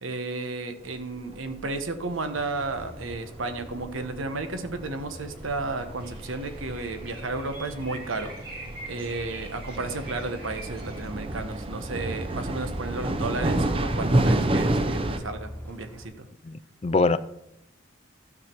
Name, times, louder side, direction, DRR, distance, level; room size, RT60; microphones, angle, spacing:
voice 1, 0.0-16.3, right 3 dB, 85° right, 8 dB, 1.1 m, -33 dB
sound 1, 0.9-15.2, right 1 dB, 25° right, 0.6 m, -30 dB
sound 2, 2.3-16.1, equal, 10° left, 1.2 m, -45 dB
sound 3, 6.0-11.1, right 2 dB, 50° right, 2.6 m, -45 dB
voice 2, 16.4-17.2, left 3 dB, 30° left, 15 dB, 0.3 m, -23 dB
12.5 x 6.2 x 4.5 m, 0.82 s
head